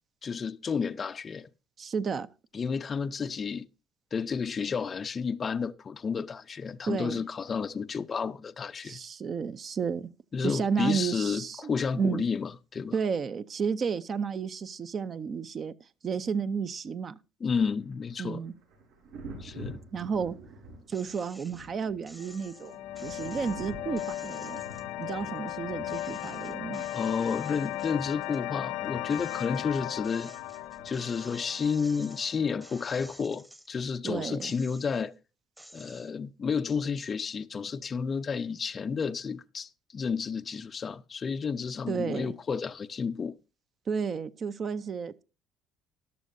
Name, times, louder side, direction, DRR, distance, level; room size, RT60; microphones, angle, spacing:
voice 1, 0.2-1.5 2.5-3.7 4.1-9.0 10.3-12.9 17.4-18.4 19.4-19.8 26.9-30.3 30.8-35.1 35.7-43.3, left 6 dB, 30° left, 0.4 m, -31 dB
voice 2, 1.8-2.3 6.9-7.2 8.8-10.1 10.4-12.2 12.9-15.7 16.0-17.2 18.2-18.5 19.9-20.4 20.9-24.6 25.0-26.8 34.0-34.5 41.9-42.3 43.9-45.2, right 6 dB, 35° right, 0.5 m, -32 dB
Thunder, 17.6-31.3 32.9-33.1, right 1 dB, 90° right, 6.0 m, -49 dB
sound 1, 20.9-21.7 22.1-25.5 25.9-28.4 28.8-33.9 34.3-35.1 35.6-36.1, equal, 5° right, 0.9 m, -52 dB
sound 2, 22.2-33.2, left 15 dB, 90° left, 0.5 m, -37 dB
13.5 x 11.5 x 2.6 m
cardioid pair, 140°, 0 cm